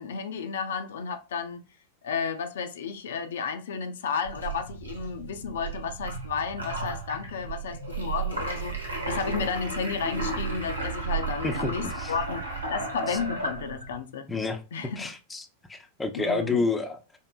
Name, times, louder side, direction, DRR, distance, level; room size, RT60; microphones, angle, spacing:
voice 1, 0.0-1.6 2.0-14.2 14.7-15.0 16.1-16.6, left 6 dB, 60° left, 0.5 m, -32 dB
sound 1, 4.2-14.0, right 4 dB, 80° right, 1.1 m, -33 dB
voice 2, 11.4-12.1 13.1-13.2 14.3-14.6 15.0-17.0, left 3 dB, 10° left, 0.6 m, -29 dB
4.5 x 2.8 x 2.2 m
figure-of-eight pair, 90°, 0 cm